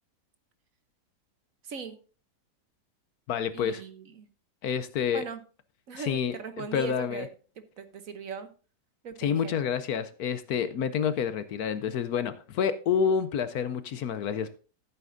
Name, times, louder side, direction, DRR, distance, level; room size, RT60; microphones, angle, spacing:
voice 1, 1.6-1.9 3.5-4.3 5.1-5.4 5.9-7.3 7.8-8.5 9.0-9.5, right 5 dB, 55° right, 1.3 m, -39 dB
voice 2, 3.3-3.8 4.6-5.2 6.0-7.3 9.2-14.6, left 7 dB, 65° left, 1.1 m, -28 dB
14.5 x 8.4 x 2.6 m
omnidirectional pair, 1.8 m